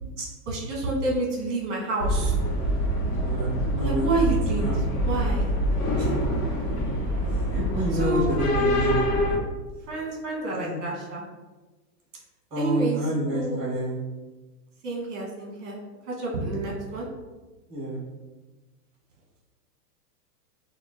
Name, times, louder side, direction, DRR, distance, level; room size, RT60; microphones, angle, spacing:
voice 1, 0.5-2.4 3.7-5.5 8.0-8.3 9.9-11.2 12.6-13.6 14.8-15.8 16.1-17.1, right 2 dB, 45° right, -1 dB, 1.1 m, -29 dB
sound 1, 2.0-9.4, equal, 60° left, 0.9 m, -25 dB
voice 2, 3.2-3.5 3.8-4.1 4.5-4.8 6.0-6.1 7.5-9.0 10.5-10.8 12.5-14.0 16.5-16.6 17.7-18.0, right 1 dB, 15° right, -4 dB, 0.8 m, -28 dB
5.6 x 2.3 x 2.5 m, 1.2 s
supercardioid pair, 175°, 49 cm